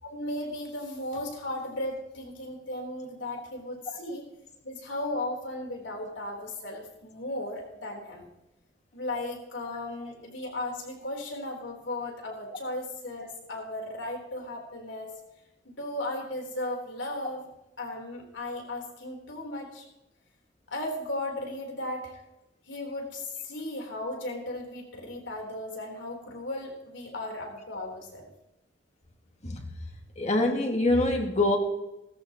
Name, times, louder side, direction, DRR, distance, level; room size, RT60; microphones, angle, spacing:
voice 1, 0.0-4.2 4.6-8.3 8.9-15.1 15.6-17.4 17.8-19.8 20.7-22.1 22.7-28.3, left 1 dB, 90° left, 1 dB, 3.9 m, -36 dB
voice 2, 30.2-31.6, left 2 dB, 40° left, 2 dB, 2.1 m, -24 dB
18.0 x 14.0 x 3.0 m, 0.92 s
head